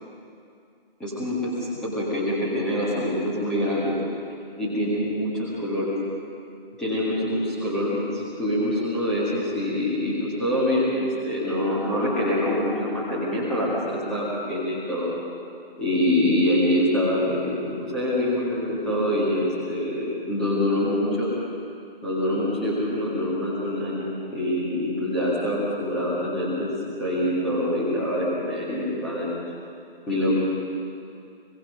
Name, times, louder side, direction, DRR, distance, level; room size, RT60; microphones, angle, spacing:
voice 1, 1.0-1.4 1.8-4.0 4.6-5.9 6.8-15.1 15.8-21.3 22.0-26.7 27.0-29.3 30.1-30.3, left 1 dB, ahead, -9 dB, 1.9 m, -25 dB
26.5 x 22.0 x 5.5 m, 2.4 s
figure-of-eight pair, 165°, 30 cm